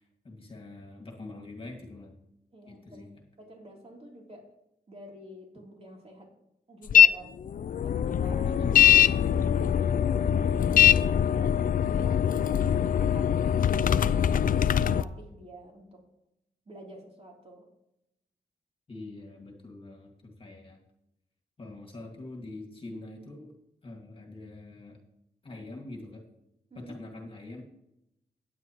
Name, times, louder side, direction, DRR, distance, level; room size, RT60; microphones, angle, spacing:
voice 1, 0.0-2.2 2.7-3.1 8.4-8.8 18.9-20.8 21.6-23.5 23.8-25.0 25.4-26.2 26.8-27.6, left 2 dB, 35° left, 1 dB, 2.0 m, -44 dB
voice 2, 2.5-3.1 3.4-4.5 4.9-6.3 6.7-7.4 7.8-8.5 9.3-14.5 14.9-16.0 16.7-17.7 26.7-26.9, right 1 dB, 40° right, -1 dB, 3.3 m, -49 dB
sound 1, 6.9-7.1 7.5-15.0, left 9 dB, 55° left, 0.4 m, -22 dB
16.0 x 9.6 x 3.0 m, 0.84 s
wide cardioid pair, 110°, 17 cm